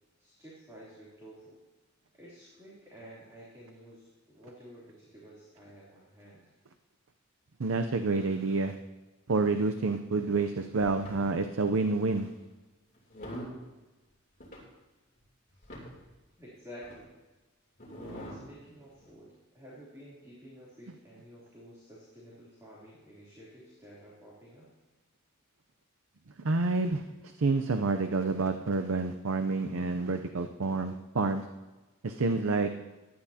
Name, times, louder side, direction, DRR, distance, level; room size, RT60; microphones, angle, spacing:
voice 1, 0.2-1.6 2.1-6.4 15.5-15.7 16.4-17.1 18.0-24.7, equal, 15° right, -8 dB, 3.1 m, -51 dB
voice 2, 7.6-8.8 9.3-12.3 26.4-27.0 27.4-31.4 32.0-32.7, right 3 dB, 70° right, 8 dB, 0.6 m, -28 dB
sound 1, 11.0-11.2 12.1-12.4 13.0-13.6 14.4-14.6 15.2-15.3 15.5-16.1 16.8-17.0 17.8-18.4 19.0-19.1, equal, 40° left, 3.0 m, -43 dB
17.5 x 12.0 x 2.8 m, 1.1 s
head